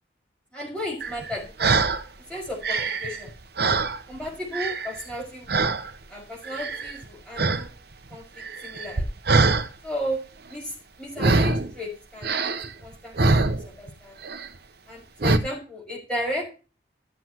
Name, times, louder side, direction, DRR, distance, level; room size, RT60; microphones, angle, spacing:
voice 1, 0.5-1.7 2.3-3.3 4.1-5.6 6.1-7.7 8.1-9.1 9.8-10.2 10.5-12.5 12.8-13.3 13.6-14.3 14.9-16.4, equal, 5° left, -2 dB, 5.7 m, -34 dB
sound 1, 1.0-2.0 2.5-4.3 4.5-5.1 5.5-5.9 6.4-7.0 7.3-7.7 7.9-9.7 11.2-11.7 12.2-13.9 14.2-14.6 15.2-15.4, right 3 dB, 60° right, 1.0 m, -23 dB
15.0 x 7.9 x 3.0 m, 0.33 s
head